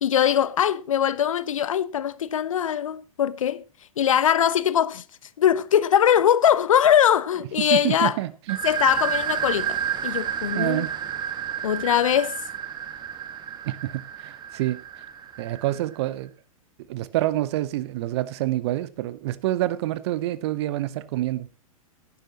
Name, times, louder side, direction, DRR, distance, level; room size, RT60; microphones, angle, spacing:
voice 1, 0.0-3.6 4.0-5.0 5.4-8.1 8.6-10.9 11.6-12.4, left 9 dB, 65° left, 0.9 m, -21 dB
voice 2, 7.6-8.6 10.5-10.9 13.6-14.8 15.4-16.3 16.9-21.5, right 15 dB, 50° right, 1.0 m, -27 dB
sound 1, 8.5-16.0, right 9 dB, 25° right, 1.6 m, -31 dB
17.5 x 10.0 x 3.0 m
figure-of-eight pair, 100°, 18 cm